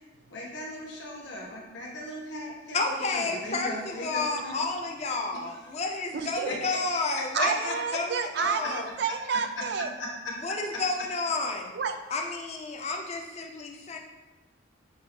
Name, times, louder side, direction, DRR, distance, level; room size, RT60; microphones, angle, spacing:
voice 1, 0.3-4.6 5.5-5.7 6.5-6.8 7.1-7.7 10.0-10.1, left 1 dB, 60° left, -2 dB, 1.0 m, -37 dB
voice 2, 2.7-7.5 7.9-8.9 10.4-11.7 12.1-14.0, left 3 dB, 30° left, 2 dB, 0.4 m, -31 dB
voice 3, 6.1-6.5 7.3-9.9 11.7-12.0, right 6 dB, 55° right, 8 dB, 0.3 m, -30 dB
7.4 x 2.6 x 2.6 m, 1.2 s
head